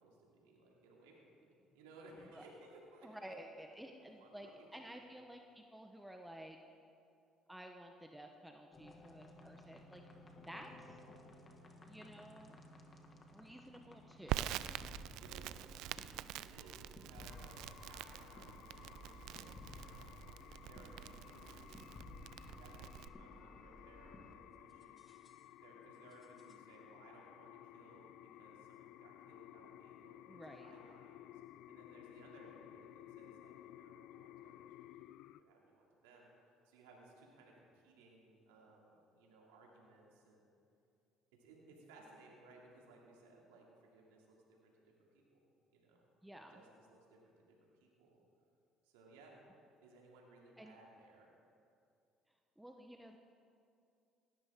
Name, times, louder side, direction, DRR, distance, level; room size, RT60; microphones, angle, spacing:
voice 1, 0.0-3.1 3.9-5.0 10.5-10.9 15.2-15.7 16.4-20.1 20.6-21.9 22.3-25.0 25.6-31.4 31.7-34.9 35.4-36.3 36.6-40.5 41.4-45.4 45.7-46.1 46.5-48.2 48.8-49.4 49.8-51.3, right 2 dB, 90° right, -2 dB, 2.6 m, -62 dB
voice 2, 3.0-6.6 7.5-10.0 10.5-11.0 11.9-12.6 13.3-14.8 30.3-30.7 46.2-46.6 50.6-50.7 52.6-53.2, equal, 5° right, 3 dB, 1.0 m, -53 dB
sound 1, 8.7-24.3 24.7-25.4 26.1-26.6, left 2 dB, 35° left, 1.8 m, -57 dB
Crackle, 14.3-23.1, right 14 dB, 75° right, 0.3 m, -46 dB
sound 2, 17.3-35.4, left 13 dB, 70° left, 0.3 m, -57 dB
18.0 x 13.0 x 3.7 m, 2.5 s
supercardioid pair, 70°, 0 cm